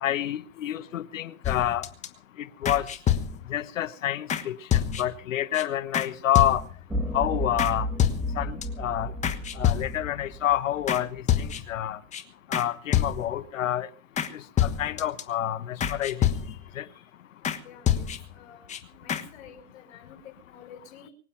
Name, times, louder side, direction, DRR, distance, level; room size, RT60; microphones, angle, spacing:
voice 1, 0.0-1.9 2.6-2.9 3.5-6.6 7.1-7.9 8.4-9.1 9.6-12.0 12.5-13.9 14.6-16.3 16.8-16.9, left 11 dB, 75° left, 1.3 m, -28 dB
sound 1, 1.4-2.1 2.6-3.6 4.3-4.4 4.7-5.2 5.5-5.6 5.9-6.1 6.3-6.9 7.6-7.7 8.0-8.6 9.2-10.2 10.9-11.0 11.3-11.8 12.1-12.2 12.5-12.7 12.9-13.5 14.2-14.3 14.6-15.2 15.8-16.7 17.4-17.6 17.9-18.4 18.7-18.8 19.1-19.2, left 10 dB, 20° left, 1.3 m, -27 dB
sound 2, 6.9-11.2, equal, 5° right, 1.9 m, -33 dB
voice 2, 16.3-17.0 17.6-18.1 18.3-21.1, left 7 dB, 60° left, 5.4 m, -50 dB
24.5 x 8.6 x 6.0 m
hypercardioid pair, 135°, 39 cm